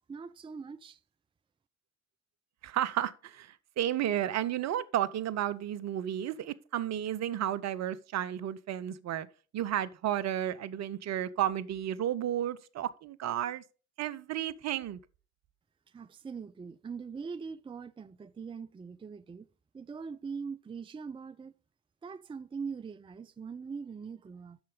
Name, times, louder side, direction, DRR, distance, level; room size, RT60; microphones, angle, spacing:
voice 1, 0.1-1.0 15.9-19.5 19.7-21.5 22.0-24.6, right 5 dB, 15° right, 0.5 m, -42 dB
voice 2, 2.6-9.3 9.5-13.6 14.0-15.0, right 11 dB, 50° right, 0.7 m, -32 dB
8.8 x 6.8 x 5.0 m
hypercardioid pair, 50°, 35 cm